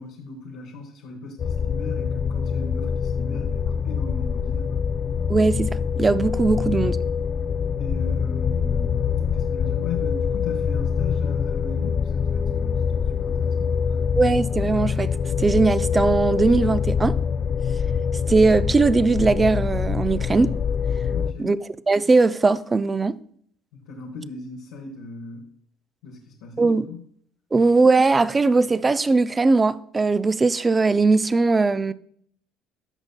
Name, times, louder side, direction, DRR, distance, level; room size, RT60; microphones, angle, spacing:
voice 1, 0.0-4.8 7.8-9.0 9.3-14.0 21.1-21.6 23.7-25.4 26.0-27.0, left 4 dB, 90° left, 1.0 m, -38 dB
sound 1, 1.4-21.3, left 6 dB, 45° left, 0.4 m, -24 dB
voice 2, 5.3-7.0 14.2-15.1 15.4-17.2 18.3-20.5 21.4-21.6 21.9-23.2 26.6-26.9 27.5-31.9, right 3 dB, 20° right, 0.4 m, -19 dB
13.0 x 5.2 x 2.2 m
supercardioid pair, 90°, 0 cm